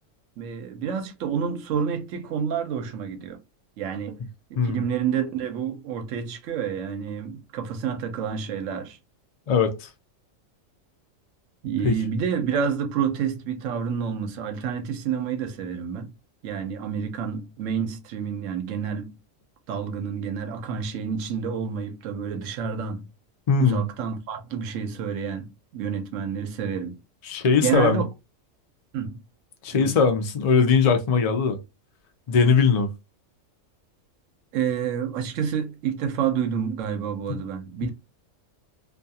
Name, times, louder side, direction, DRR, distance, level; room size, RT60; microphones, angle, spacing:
voice 1, 0.4-3.4 3.8-4.2 4.5-9.0 11.6-16.1 16.4-19.1 19.7-23.0 23.6-26.9 27.6-28.1 28.9-29.2 29.7-30.0 34.5-37.9, right 7 dB, 75° right, 1.0 m, -29 dB
voice 2, 9.5-9.9 11.8-11.9 23.5-23.8 27.3-28.0 29.6-31.6 32.3-32.9 37.3-37.4, left 5 dB, 75° left, 0.3 m, -20 dB
2.4 x 2.3 x 2.7 m
omnidirectional pair, 1.4 m